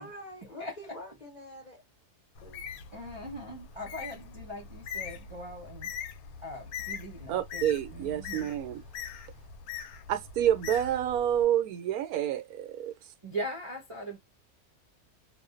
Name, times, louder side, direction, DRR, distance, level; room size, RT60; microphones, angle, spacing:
voice 1, 0.0-1.8 2.4-2.6, equal, 40° left, 0.6 m, -46 dB
Bird, 2.3-11.4, left 7 dB, 75° left, 1.0 m, -42 dB
voice 2, 2.9-5.9 6.4-8.5 13.2-14.2, equal, 30° right, 0.6 m, -40 dB
voice 3, 7.3-8.8 10.1-12.9, right 11 dB, 80° right, 1.0 m, -28 dB
2.4 x 2.2 x 2.4 m
omnidirectional pair, 1.6 m